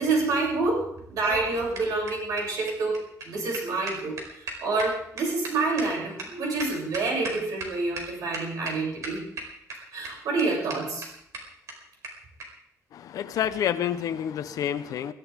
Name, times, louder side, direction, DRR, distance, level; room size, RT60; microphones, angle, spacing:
voice 1, 0.0-9.2 9.9-11.1, right 3 dB, 85° right, -2 dB, 7.8 m, -28 dB
sound 1, 1.0-7.7 8.0-8.1 8.3-8.7 9.0-9.7 10.0-10.1 10.4-10.5 10.7-10.8 11.0-11.1 11.3-11.4 11.7-11.8 12.0-12.1 12.4-12.5 13.3-13.5, right 3 dB, 60° right, 4.6 m, -36 dB
voice 2, 12.9-15.1, left 9 dB, 75° left, 11 dB, 1.0 m, -28 dB
22.5 x 15.0 x 3.7 m, 0.71 s
wide cardioid pair, 180°, 6 cm